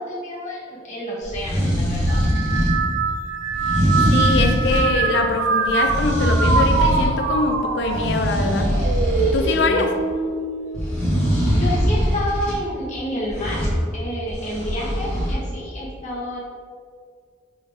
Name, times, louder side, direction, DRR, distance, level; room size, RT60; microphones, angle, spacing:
voice 1, 0.0-2.3 9.5-10.0 11.5-13.6 13.9-16.4, equal, 35° left, -6 dB, 0.9 m, -29 dB
sound 1, 1.2-2.8 3.5-4.9 5.6-7.2 7.5-9.6 10.7-12.6 13.3-13.8 14.3-15.3, equal, 10° left, 1.4 m, -21 dB
sound 2, 2.1-11.7 12.1-12.7 13.7-14.0, right 4 dB, 75° right, 0.3 m, -25 dB
voice 2, 4.1-8.7 9.2-10.0, left 3 dB, 60° left, 5 dB, 0.4 m, -23 dB
5.4 x 3.1 x 2.5 m, 2.1 s
head